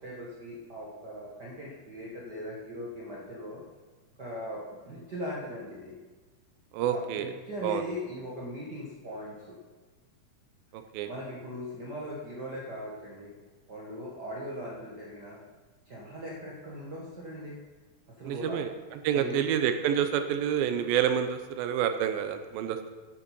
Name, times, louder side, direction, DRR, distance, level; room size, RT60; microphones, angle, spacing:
voice 1, 0.0-3.6 4.2-5.9 6.9-9.6 11.1-13.3 13.7-15.4 15.8-17.6 18.2-18.6 19.1-19.4, equal, 50° right, -5 dB, 1.2 m, -39 dB
voice 2, 6.7-7.3 7.6-7.8 10.7-11.1 18.2-18.7 19.0-22.9, right 9 dB, 85° right, 7 dB, 2.5 m, -28 dB
9.6 x 8.2 x 5.5 m, 1.3 s
omnidirectional pair, 4.1 m